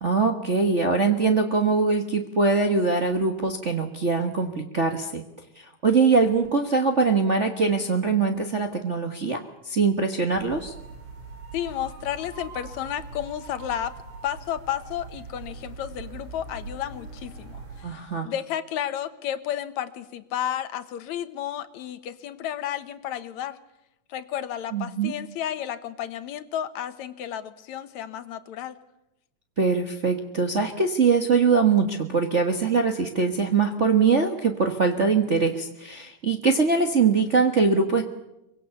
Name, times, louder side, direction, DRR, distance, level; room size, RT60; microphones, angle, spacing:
voice 1, 0.0-5.2 5.8-9.4 9.6-10.7 17.8-18.3 24.7-25.1 29.6-38.0, right 4 dB, 40° right, 3 dB, 1.0 m, -22 dB
sound 1, 10.3-17.8, right 3 dB, 75° right, 5.9 m, -41 dB
voice 2, 11.5-13.9 14.2-18.0 18.2-23.6 24.1-28.8, left 10 dB, 75° left, 12 dB, 2.4 m, -32 dB
24.0 x 23.5 x 7.0 m, 0.93 s
omnidirectional pair, 3.3 m